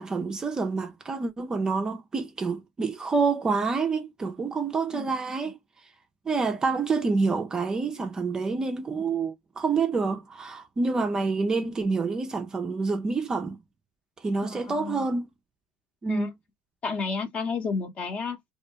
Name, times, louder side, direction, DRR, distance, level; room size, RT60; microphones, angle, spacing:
voice 1, 0.0-5.6 6.3-13.6 14.2-15.3 16.0-16.3, right 4 dB, 20° right, 0.4 m, -27 dB
voice 2, 14.5-15.0 16.1-16.3 16.8-18.4, left 4 dB, 35° left, 0.7 m, -31 dB
2.3 x 2.1 x 2.7 m
supercardioid pair, 115°, 4 cm